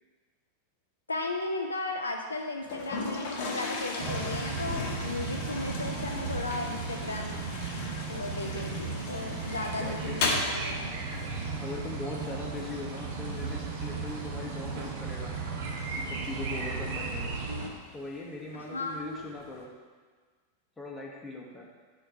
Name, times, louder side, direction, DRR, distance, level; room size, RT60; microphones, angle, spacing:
voice 1, 1.1-7.4 8.1-10.9 17.5-17.7 18.5-19.3, left 2 dB, 75° left, 3 dB, 0.4 m, -35 dB
Toilet flush, 2.6-19.6, left 3 dB, 50° left, 0.9 m, -39 dB
sound 1, 4.0-17.7, right 4 dB, 50° right, 0.8 m, -35 dB
voice 2, 9.8-10.3 11.6-15.3 15.9-17.4 17.9-19.7 20.8-21.7, left 2 dB, 10° left, -2 dB, 0.9 m, -40 dB
4.5 x 4.5 x 5.7 m, 1.5 s
figure-of-eight pair, 90°, 0 cm